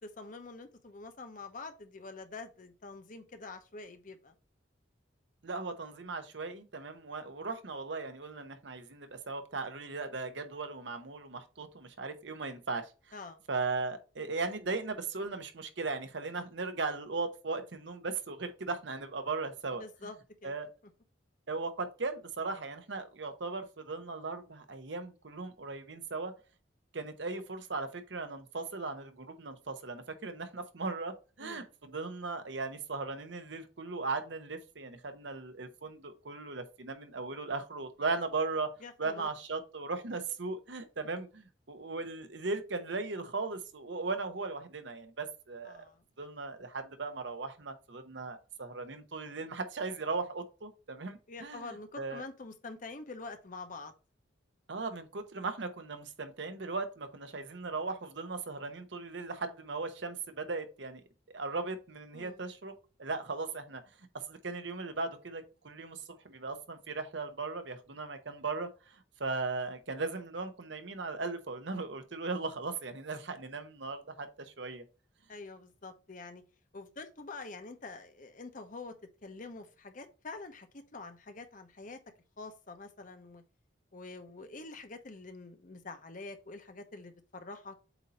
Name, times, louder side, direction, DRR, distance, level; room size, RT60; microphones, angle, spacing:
voice 1, 0.0-4.3 13.1-13.4 19.8-20.2 20.4-20.5 31.4-31.7 38.8-39.3 45.7-46.0 51.3-53.9 62.1-62.4 75.3-76.4 76.7-78.9 79.2-82.0 82.4-83.4 83.9-87.8, left 3 dB, 45° left, 0.8 m, -46 dB
voice 2, 5.4-12.9 13.5-19.8 20.4-20.7 21.5-26.3 26.9-38.7 39.0-45.9 46.2-52.2 54.7-61.0 61.3-62.7 63.0-74.8, right 3 dB, 70° right, 0.9 m, -38 dB
8.1 x 2.8 x 4.2 m
head